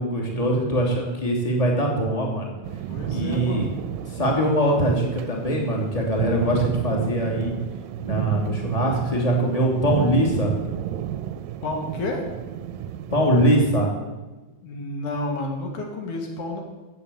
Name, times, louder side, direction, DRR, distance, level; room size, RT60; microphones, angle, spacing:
voice 1, 0.0-2.5 3.1-3.7 4.0-7.6 8.0-10.5 13.1-13.9, right 1 dB, 10° left, 0 dB, 2.5 m, -22 dB
sound 1, 2.6-13.6, right 10 dB, 80° right, 1.9 m, -32 dB
voice 2, 2.9-3.8 11.6-12.2 14.6-16.6, left 2 dB, 90° left, 1 dB, 3.9 m, -30 dB
15.0 x 7.8 x 8.4 m, 1.2 s
omnidirectional pair, 3.4 m